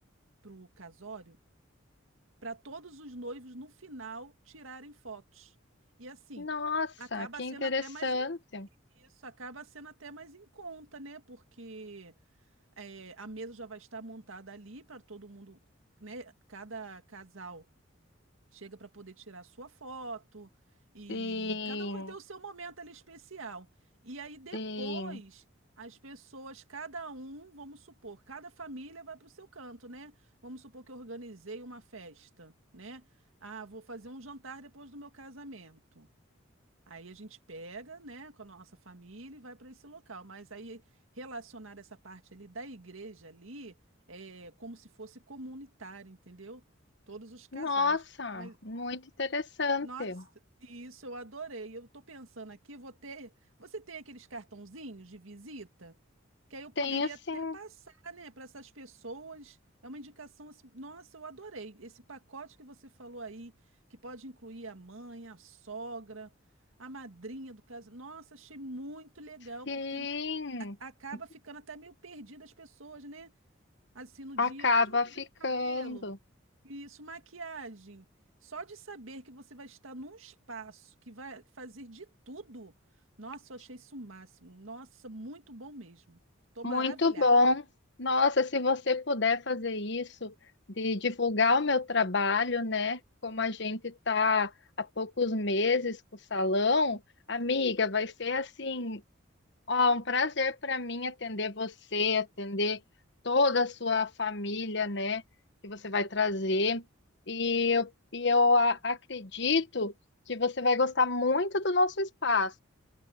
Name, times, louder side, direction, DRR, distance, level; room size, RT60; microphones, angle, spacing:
voice 1, 0.4-1.4 2.4-5.5 6.0-6.5 7.0-8.3 8.9-12.1 12.8-15.6 16.0-17.7 18.5-20.5 20.9-23.7 24.0-25.4 25.8-30.2 30.4-33.0 33.4-36.1 36.9-40.8 41.1-43.8 44.1-46.6 47.1-48.0 48.3-48.6 49.8-50.1 50.6-53.3 53.6-56.0 56.5-59.6 59.8-63.5 63.9-66.3 66.8-70.1 70.6-73.3 73.9-76.1 76.6-78.1 78.4-82.7 83.2-86.2 86.5-87.5, right 2 dB, 85° right, 2.1 m, -45 dB
voice 2, 6.4-8.7 21.1-22.1 24.5-25.2 47.5-50.2 56.8-57.5 69.7-70.7 74.4-76.2 86.6-87.6 88.0-90.3 90.8-94.5 94.8-96.0 96.3-97.0 97.3-99.0 99.7-102.8 103.2-105.2 105.6-106.8 107.3-109.9 110.3-112.6, left 3 dB, 60° left, 1.3 m, -28 dB
open air
head